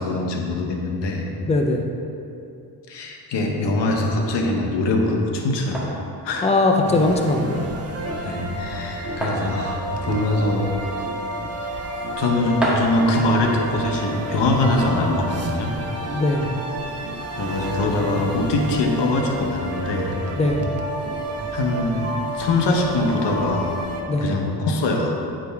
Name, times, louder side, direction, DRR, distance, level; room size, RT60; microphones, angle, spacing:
voice 1, 0.0-1.3 2.9-5.9 6.2-6.5 8.2-10.7 12.2-15.8 17.4-20.1 21.5-23.8 24.2-25.1, left 2 dB, 80° left, 1 dB, 1.0 m, -23 dB
voice 2, 1.5-1.8 6.4-7.6 16.1-16.5 20.4-20.7 24.1-24.2, left 2 dB, 15° left, 2 dB, 0.6 m, -20 dB
sound 1, 3.7-15.6, right 1 dB, ahead, 1.8 m, -34 dB
sound 2, 6.8-24.0, right 1 dB, 35° right, 0.9 m, -30 dB
9.5 x 5.1 x 3.4 m, 2.7 s
cardioid pair, 80°, 42 cm